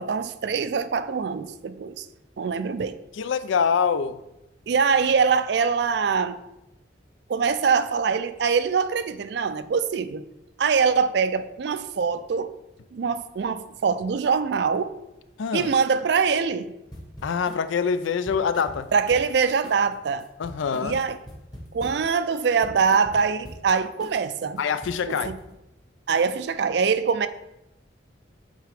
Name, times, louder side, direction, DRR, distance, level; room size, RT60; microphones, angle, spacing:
voice 1, 0.0-2.1 2.4-3.0 4.7-6.4 7.3-10.3 10.6-12.5 12.9-14.9 15.5-16.7 18.9-20.2 20.8-21.2 21.7-24.6 25.1-25.3 26.1-27.3, right 5 dB, 60° right, 0.4 m, -23 dB
voice 2, 3.1-4.2 15.4-15.7 17.2-18.9 20.4-21.0 24.6-25.3, left 6 dB, 80° left, 0.4 m, -25 dB
sound 1, 16.9-17.7 18.0-19.4 19.6-19.9 20.2-22.1 22.4-23.6 24.0-24.3 24.6-25.6, equal, 20° left, 1.0 m, -42 dB
8.0 x 3.7 x 3.4 m
head